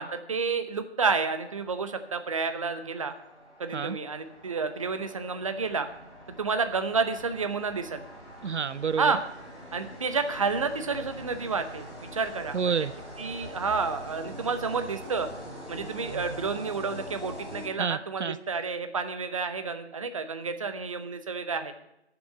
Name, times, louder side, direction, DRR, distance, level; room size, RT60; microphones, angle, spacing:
voice 1, 0.0-3.1 3.6-5.9 6.4-8.0 9.0-9.2 9.7-11.9 12.1-12.6 13.2-15.3 15.7-21.7, right 4 dB, 30° right, 9 dB, 0.8 m, -30 dB
sound 1, 1.3-18.2, equal, ahead, 2.3 m, -44 dB
voice 2, 8.4-9.1 12.5-12.9 17.8-18.4, right 6 dB, 80° right, 18 dB, 0.5 m, -29 dB
9.9 x 7.0 x 8.0 m, 0.86 s
figure-of-eight pair, 150°, 34 cm